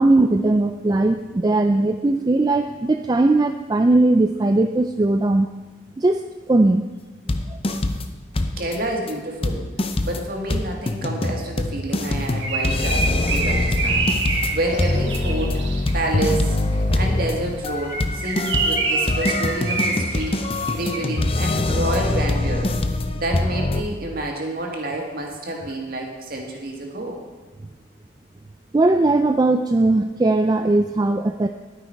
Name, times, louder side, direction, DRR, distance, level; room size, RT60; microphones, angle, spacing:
voice 1, 0.0-5.5 6.0-6.2 6.5-6.8 7.5-7.8 28.7-31.5, right 2 dB, 20° right, 6 dB, 0.3 m, -19 dB
sound 1, 7.3-8.1 8.4-8.8 9.1-9.2 9.4-23.8, left 2 dB, 30° left, 0.6 m, -24 dB
voice 2, 8.6-9.6 10.0-15.6 15.9-16.6 16.9-22.7 23.1-27.2, right 1 dB, 45° right, 1 dB, 2.0 m, -28 dB
Bird, 12.0-16.1 17.7-21.2, right 3 dB, 65° right, 1.3 m, -26 dB
11.0 x 9.8 x 4.6 m, 1.3 s
head